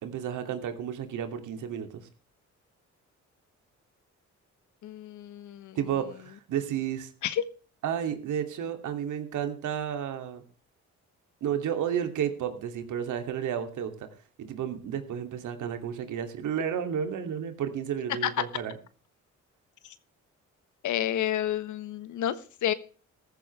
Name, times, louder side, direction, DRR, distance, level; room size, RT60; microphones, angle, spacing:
voice 1, 0.0-2.0 5.7-7.1 7.8-10.4 11.4-14.1 14.4-18.7, right 9 dB, 80° right, 7 dB, 2.8 m, -32 dB
voice 2, 4.8-5.8 7.2-7.4 18.2-18.3 19.8-19.9 20.8-22.7, left 11 dB, 75° left, 13 dB, 1.4 m, -30 dB
15.0 x 13.5 x 3.4 m, 0.39 s
cardioid pair, 90°, 30 cm